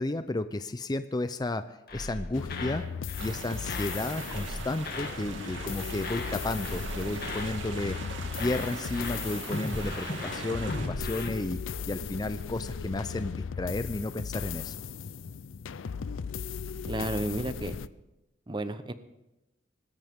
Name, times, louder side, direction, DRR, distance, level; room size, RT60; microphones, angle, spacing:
voice 1, 0.0-1.6 1.9-2.8 3.2-8.0 8.4-11.6 11.9-14.7, left 2 dB, 20° left, 11 dB, 0.4 m, -32 dB
sound 1, 1.9-3.4 3.6-5.2 5.4-5.7 6.0-7.5 7.8-8.1 8.4-11.3, left 2 dB, 50° left, 2.2 m, -38 dB
sound 2, 2.3-17.9, left 6 dB, 85° left, 0.5 m, -37 dB
sound 3, 3.2-10.9, right 3 dB, 75° right, 2.1 m, -41 dB
voice 2, 16.9-17.8 18.5-18.9, right 1 dB, 25° right, 11 dB, 0.8 m, -32 dB
24.5 x 13.5 x 3.6 m, 0.94 s
head